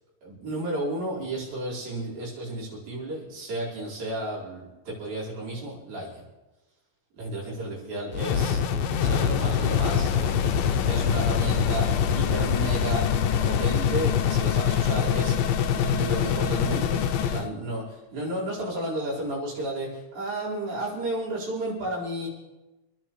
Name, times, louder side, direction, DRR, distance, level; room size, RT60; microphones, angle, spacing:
voice 1, 0.2-6.2 7.1-8.6 9.0-10.1 10.8-13.1 13.4-22.3, right 1 dB, 75° right, -7 dB, 6.6 m, -32 dB
sound 1, 8.1-17.5, left 8 dB, 75° left, 2.4 m, -24 dB
29.0 x 11.0 x 3.2 m, 1.1 s
omnidirectional pair, 4.3 m